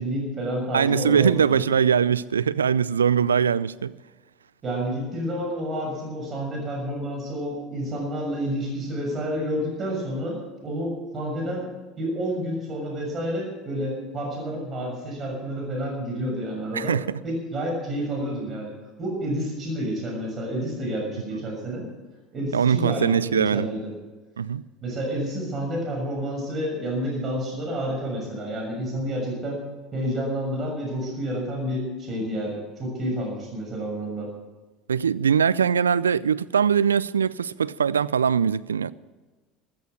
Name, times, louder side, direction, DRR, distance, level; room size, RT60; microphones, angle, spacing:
voice 1, 0.0-1.6 4.6-11.7 12.0-17.0 17.2-18.7 19.0-21.9 22.3-23.9 24.8-29.6 29.9-34.3, equal, 35° right, 6.6 m, -29 dB
voice 2, 0.7-3.9 16.7-17.2 22.5-23.7 24.4-24.6 34.9-38.9, right 7 dB, 85° right, 0.4 m, -22 dB
14.5 x 14.0 x 6.4 m
figure-of-eight pair, 70°, 0 cm